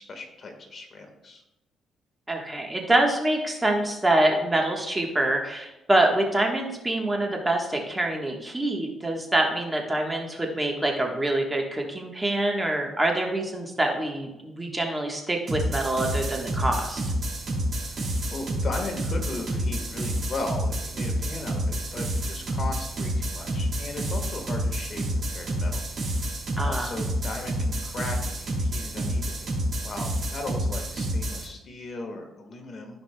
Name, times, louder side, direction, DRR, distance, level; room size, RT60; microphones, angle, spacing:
voice 1, 0.0-1.4 18.3-25.8 26.6-33.0, left 2 dB, 45° left, 3 dB, 1.5 m, -37 dB
voice 2, 2.3-17.0 26.6-26.9, right 1 dB, 15° right, 1 dB, 1.2 m, -25 dB
sound 1, 15.5-31.5, right 1 dB, 50° right, 2.5 m, -29 dB
14.0 x 4.9 x 2.2 m, 0.97 s
cardioid pair, 90°, 0 cm